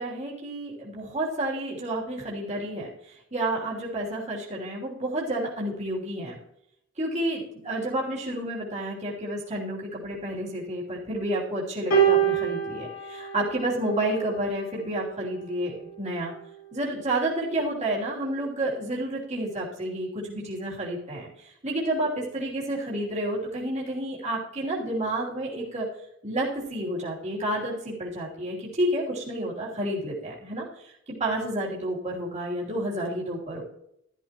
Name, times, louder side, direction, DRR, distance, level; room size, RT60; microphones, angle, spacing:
voice 1, 0.0-6.4 7.0-16.3 16.7-25.9 26.2-30.9 31.2-33.6, right 1 dB, 35° right, -5 dB, 3.1 m, -30 dB
sound 1, 11.9-14.4 15.4-15.6, right 8 dB, 75° left, 4.1 m, -25 dB
13.0 x 13.0 x 3.0 m, 0.78 s
head